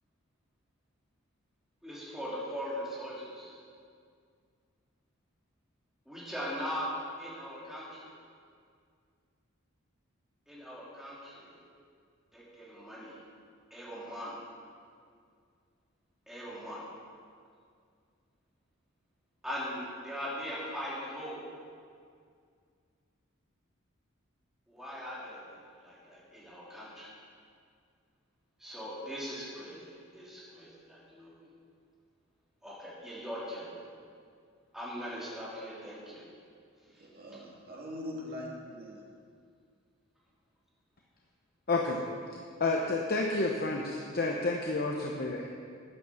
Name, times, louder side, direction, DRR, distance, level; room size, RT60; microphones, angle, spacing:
voice 1, 1.8-3.6 6.1-6.9 7.2-8.1 10.5-11.5 12.3-13.1 13.7-14.3 16.3-16.8 19.4-21.4 24.7-27.1 28.6-29.9 30.1-31.3 32.6-33.7 34.7-36.2, equal, ahead, -8 dB, 3.1 m, -40 dB
voice 2, 37.0-39.0, left 1 dB, 45° right, -3 dB, 2.4 m, -42 dB
voice 3, 41.7-42.0 42.6-45.5, left 3 dB, 45° left, 0 dB, 1.0 m, -30 dB
11.0 x 9.4 x 7.1 m, 2.2 s
head